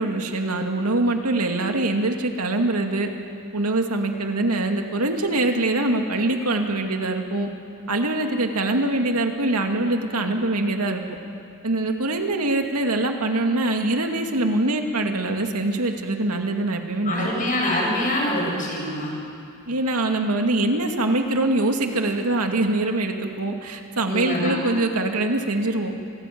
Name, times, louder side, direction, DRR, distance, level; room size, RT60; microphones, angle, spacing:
voice 1, 0.0-3.1 3.5-7.5 7.9-11.0 11.6-17.3 19.7-25.9, right 2 dB, 85° right, 4 dB, 2.3 m, -23 dB
voice 2, 17.0-19.1 24.1-24.5, left 1 dB, 40° left, -2 dB, 7.7 m, -25 dB
27.5 x 19.0 x 9.4 m, 2.5 s
head